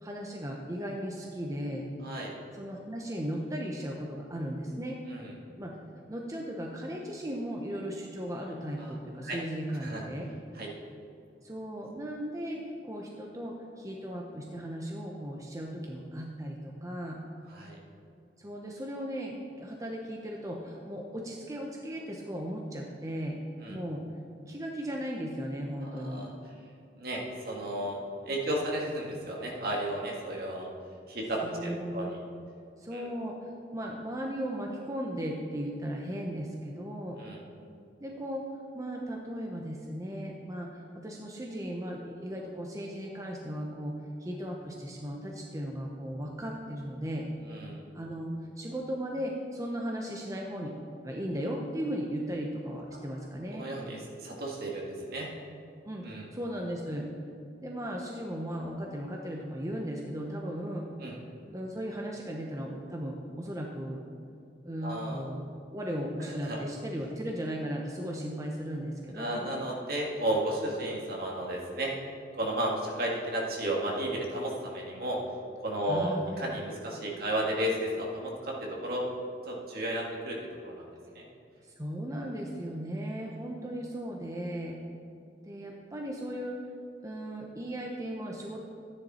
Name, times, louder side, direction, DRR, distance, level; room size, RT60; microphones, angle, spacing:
voice 1, 0.0-1.9 2.5-5.0 5.6-5.7 6.1-10.3 11.4-17.2 18.4-23.4 23.7-24.0 24.5-26.2 31.4-32.1 32.8-33.4 33.7-37.2 38.0-38.4 38.7-47.3 47.9-50.8 51.0-53.7 55.9-56.0 56.3-57.3 57.6-60.9 61.5-64.0 64.6-65.4 65.7-69.5 75.8-76.3 81.6-84.8 85.4-86.6 87.0-88.6, equal, 20° right, 0 dB, 0.8 m, -36 dB
voice 2, 2.0-2.3 5.1-5.3 8.8-8.9 9.2-9.4 9.8-10.0 10.6-10.7 17.5-17.8 23.6-23.8 25.8-26.3 27.0-30.7 31.1-32.2 32.9-33.1 37.1-37.4 47.5-47.8 53.5-55.3 56.0-56.3 61.0-61.2 64.8-65.2 66.3-66.6 69.1-71.9 72.3-75.2 75.6-79.1 79.4-80.4 80.6-80.9 81.1-81.3, right 1 dB, 60° right, -2 dB, 2.0 m, -33 dB
12.5 x 9.9 x 4.3 m, 2.5 s
head